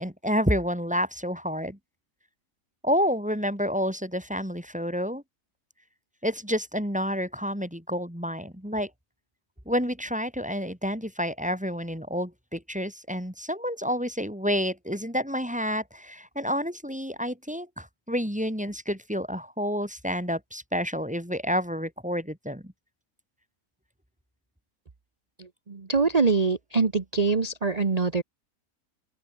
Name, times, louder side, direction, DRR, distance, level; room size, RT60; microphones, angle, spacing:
voice 1, 0.0-1.8 2.8-5.2 6.2-8.9 9.6-22.7, equal, 5° right, 3.2 m, -29 dB
voice 2, 25.4-28.2, right 4 dB, 25° right, 1.2 m, -24 dB
open air
omnidirectional pair, 1.6 m